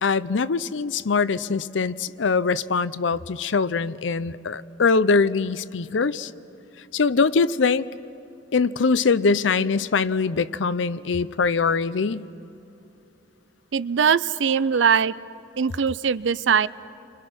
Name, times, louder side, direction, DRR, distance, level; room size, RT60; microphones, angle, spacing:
voice 1, 0.0-6.3 6.9-7.9 8.5-12.3, left 4 dB, 80° left, 16 dB, 0.6 m, -22 dB
voice 2, 13.7-15.1 15.6-16.7, right 6 dB, 75° right, 17 dB, 0.5 m, -21 dB
29.5 x 25.0 x 6.2 m, 2.9 s
head